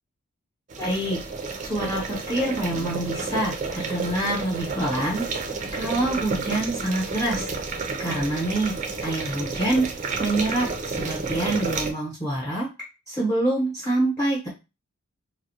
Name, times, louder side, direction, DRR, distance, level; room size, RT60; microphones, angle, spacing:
sound 1, 0.7-11.9, right 4 dB, 35° right, 0.4 m, -31 dB
voice 1, 0.8-1.2 1.6-5.2 5.7-7.5 8.0-8.7 9.0-9.8 10.2-12.7 13.1-14.5, right 1 dB, 10° left, -7 dB, 0.8 m, -26 dB
2.3 x 2.0 x 2.7 m, 0.28 s
head